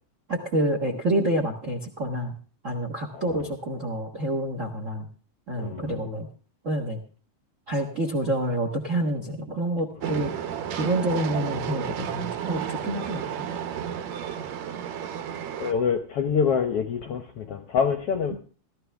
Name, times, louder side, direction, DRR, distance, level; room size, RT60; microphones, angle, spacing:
voice 1, 0.3-2.3 2.6-5.1 5.5-6.3 6.6-7.0 7.7-10.3 10.7-13.5 18.3-18.4, right 1 dB, 50° right, 0.9 m, -28 dB
voice 2, 3.1-3.5 5.6-6.0 15.6-18.4, left 6 dB, 70° left, 1.4 m, -26 dB
Train, 10.0-15.7, right 8 dB, 70° right, 2.2 m, -32 dB
16.5 x 12.5 x 3.5 m
omnidirectional pair, 3.6 m